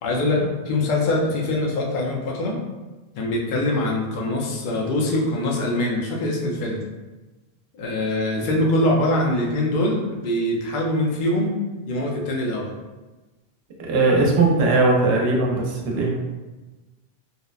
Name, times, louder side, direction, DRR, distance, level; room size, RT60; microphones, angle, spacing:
voice 1, 0.0-2.6 3.2-6.8 7.7-11.5 11.9-12.7, left 1 dB, 60° left, -1 dB, 0.6 m, -23 dB
voice 2, 13.8-16.1, right 3 dB, 80° right, -1 dB, 0.8 m, -19 dB
2.8 x 2.0 x 2.3 m, 1.2 s
omnidirectional pair, 1.0 m